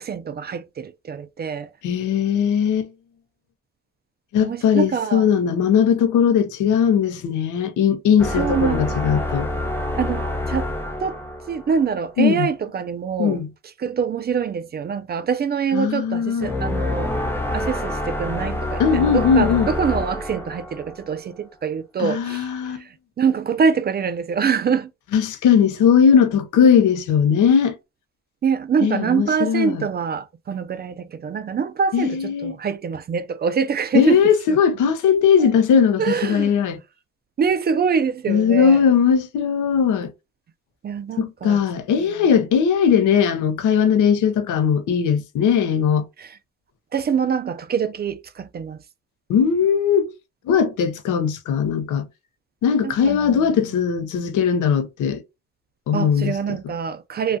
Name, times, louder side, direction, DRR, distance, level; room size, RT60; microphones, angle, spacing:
voice 1, 0.0-1.7 4.4-5.3 8.3-9.6 10.0-10.7 11.0-11.2 11.5-13.4 13.8-17.1 17.5-24.9 28.4-34.6 35.4-35.5 36.0-36.6 37.4-38.9 40.8-41.6 42.0-42.1 46.2-46.4 46.9-48.8 52.8-53.9 55.9-57.4, right 6 dB, 35° right, 0.4 m, -25 dB
voice 2, 1.8-2.9 4.3-9.5 12.2-12.5 13.2-13.5 15.7-16.5 18.8-19.7 22.0-22.8 25.1-27.7 28.8-29.9 31.9-32.5 33.9-36.8 38.3-40.1 41.2-46.1 49.3-50.1 50.5-52.1 52.6-55.2 55.9-56.3, left 7 dB, 85° left, 0.7 m, -19 dB
sound 1, 8.2-11.9 16.4-21.2, left 1 dB, 10° left, 0.7 m, -27 dB
3.1 x 2.3 x 2.6 m
cardioid pair, 90°, 30 cm